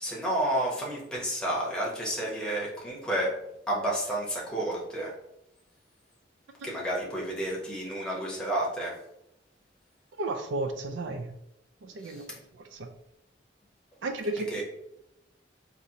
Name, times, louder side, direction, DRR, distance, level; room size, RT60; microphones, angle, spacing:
voice 1, 0.0-3.3 3.7-5.1 6.6-8.9 12.0-12.2 14.5-14.6, right 1 dB, 5° left, 0.9 m, -30 dB
voice 2, 10.2-11.3 11.8-12.4 12.7-12.9 14.0-14.6, right 2 dB, 75° right, 0.4 m, -33 dB
4.2 x 2.5 x 2.8 m
head